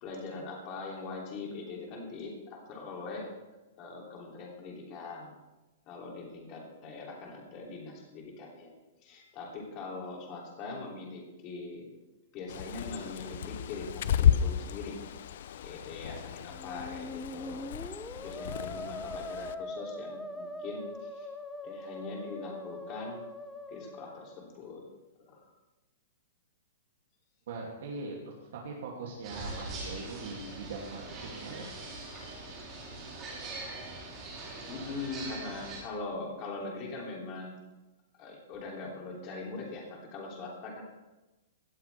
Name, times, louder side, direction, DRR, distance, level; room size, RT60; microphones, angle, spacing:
voice 1, 0.0-3.3 3.8-5.3 5.9-12.0 12.3-15.0 15.6-17.6 18.2-21.3 21.6-23.2 23.7-24.8 25.2-25.5 34.7-37.6 38.2-40.8, left 3 dB, 25° left, -1 dB, 2.9 m, -42 dB
Bird, 12.5-19.5, left 9 dB, 45° left, 0.6 m, -32 dB
Musical instrument, 16.5-24.5, left 1 dB, ahead, 0.5 m, -42 dB
voice 2, 27.5-28.2 28.5-31.7, right 3 dB, 55° right, -3 dB, 2.6 m, -41 dB
sound 1, 29.2-35.8, right 2 dB, 20° right, 3.3 m, -42 dB
17.5 x 13.5 x 3.5 m, 1.1 s
hypercardioid pair, 180°, 0 cm